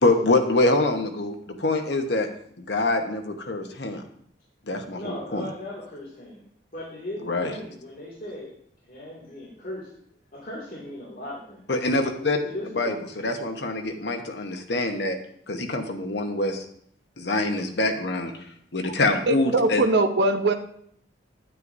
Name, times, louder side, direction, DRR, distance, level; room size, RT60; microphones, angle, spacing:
voice 1, 0.0-2.3 2.6-4.0 4.7-5.5 7.2-7.5 11.7-12.4 12.7-15.2 15.5-16.6 17.2-18.4 18.7-19.8, left 2 dB, 65° left, 5 dB, 1.0 m, -25 dB
voice 2, 4.9-6.4 6.7-8.5 8.8-9.9 10.3-11.7 12.4-12.9, left 1 dB, 50° left, -6 dB, 2.3 m, -37 dB
voice 3, 19.3-20.5, right 2 dB, 65° right, 6 dB, 0.8 m, -21 dB
9.4 x 9.2 x 2.6 m, 0.66 s
head